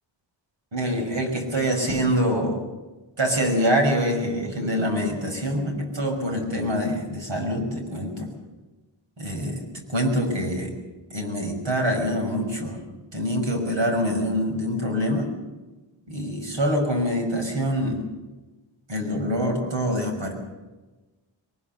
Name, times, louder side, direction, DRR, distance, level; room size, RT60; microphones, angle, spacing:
voice 1, 0.7-2.6 3.2-8.3 9.2-10.7 11.1-12.8 13.1-15.3 16.1-18.0 18.9-20.3, equal, 70° right, 3 dB, 6.1 m, -25 dB
22.5 x 20.5 x 6.8 m, 1.2 s
wide cardioid pair, 105°, 46 cm